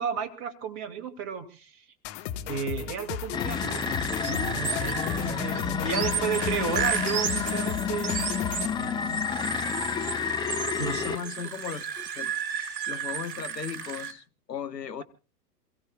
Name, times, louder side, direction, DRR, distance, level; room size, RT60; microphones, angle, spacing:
voice 1, 0.0-1.9 2.5-8.3 8.8-9.3 10.8-11.2, right 6 dB, 30° right, 2.3 m, -33 dB
sound 1, 2.0-8.8, left 10 dB, 40° left, 1.4 m, -36 dB
sound 2, 3.3-11.2, left 7 dB, 10° left, 0.7 m, -30 dB
sound 3, 3.4-14.1, right 7 dB, 60° right, 3.1 m, -34 dB
voice 2, 10.8-12.3 12.9-15.0, left 7 dB, 80° left, 1.2 m, -37 dB
28.0 x 16.5 x 2.4 m
figure-of-eight pair, 95°, 49 cm